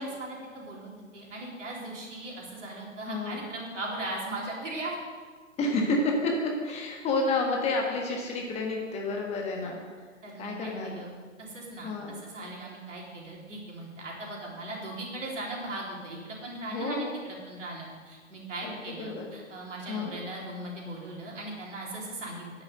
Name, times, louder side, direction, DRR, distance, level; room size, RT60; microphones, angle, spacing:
voice 1, 0.0-5.0 10.2-11.1 11.4-11.9 12.2-22.5, right 2 dB, 65° right, -3 dB, 3.8 m, -38 dB
voice 2, 3.1-3.4 5.6-9.8 10.4-11.0 11.8-12.2 16.7-17.1 18.6-19.3 19.9-20.1, left 2 dB, 15° left, 1 dB, 1.4 m, -30 dB
10.5 x 7.1 x 7.8 m, 1.5 s
figure-of-eight pair, 120°, 39 cm